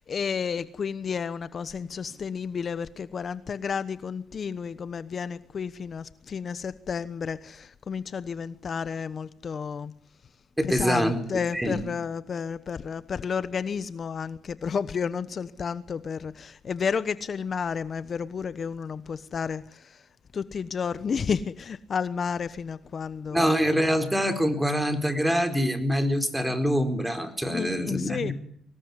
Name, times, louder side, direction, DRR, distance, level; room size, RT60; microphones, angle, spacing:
voice 1, 0.0-9.9 10.6-20.0 20.3-23.6 27.5-28.3, left 6 dB, 45° left, 1.1 m, -31 dB
voice 2, 10.6-11.2 11.5-11.8 23.3-28.3, equal, 5° right, 4.4 m, -25 dB
24.5 x 19.5 x 9.8 m
cardioid pair, 90°, 0 cm